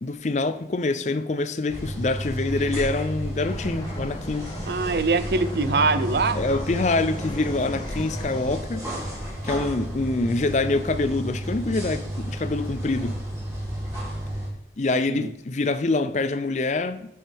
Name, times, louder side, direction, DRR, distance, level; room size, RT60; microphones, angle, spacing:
voice 1, 0.0-4.5 6.3-8.9 9.4-13.2 14.8-17.1, left 2 dB, 40° left, 0.5 m, -25 dB
sound 1, 1.7-14.5, equal, 20° right, 3.4 m, -32 dB
sound 2, 3.5-8.6, left 1 dB, 25° left, 1.1 m, -37 dB
voice 2, 4.7-6.4 15.1-15.3, right 3 dB, 65° right, 0.5 m, -23 dB
9.4 x 6.2 x 3.5 m
head